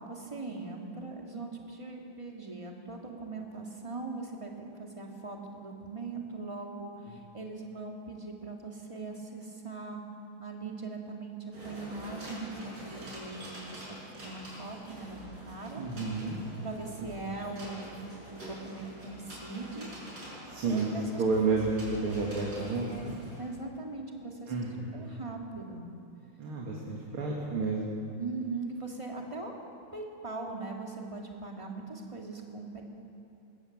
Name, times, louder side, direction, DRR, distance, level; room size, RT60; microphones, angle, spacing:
voice 1, 0.1-4.5 4.8-10.0 10.4-13.8 14.1-15.8 16.6-19.9 20.6-21.2 23.4-24.6 24.9-25.9 28.2-29.6 29.9-32.8, right 3 dB, 15° right, 1 dB, 2.1 m, -40 dB
sound 1, 11.5-23.4, right 1 dB, 50° right, 6.3 m, -46 dB
voice 2, 15.8-16.4 20.5-20.9 21.2-21.7 22.0-23.2 24.5-24.9 26.4-27.8, right 4 dB, 85° right, -2 dB, 3.0 m, -30 dB
21.0 x 17.0 x 7.3 m, 2.6 s
omnidirectional pair, 2.3 m